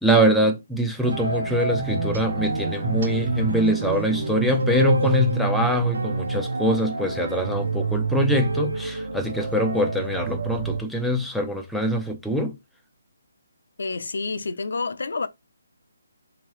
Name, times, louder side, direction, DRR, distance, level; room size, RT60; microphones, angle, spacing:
voice 1, 0.0-12.5, equal, ahead, 0.4 m, -23 dB
sound 1, 1.0-10.8, right 2 dB, 90° right, 1.2 m, -28 dB
sound 2, 1.7-6.9, right 3 dB, 50° right, 1.3 m, -28 dB
voice 2, 13.8-15.3, left 4 dB, 65° left, 0.6 m, -28 dB
4.5 x 2.8 x 3.1 m
hypercardioid pair, 175°, 0 cm